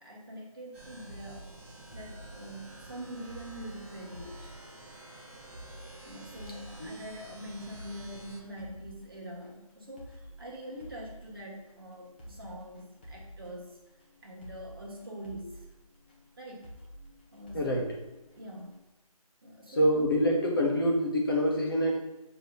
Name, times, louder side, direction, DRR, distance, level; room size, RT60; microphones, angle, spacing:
voice 1, 0.0-1.5 1.9-4.5 6.0-13.8 14.2-15.6 16.4-16.7 17.3-17.6 18.3-18.7 19.4-20.1, right 1 dB, 40° right, -3 dB, 1.5 m, -44 dB
sound 1, 0.7-8.4, right 2 dB, 20° right, 1.3 m, -50 dB
sound 2, 1.1-18.8, equal, 15° left, 0.7 m, -51 dB
voice 2, 17.5-17.9 19.7-22.0, equal, 35° left, -1 dB, 1.0 m, -26 dB
6.4 x 3.1 x 5.3 m, 1.1 s
figure-of-eight pair, 165°, 19 cm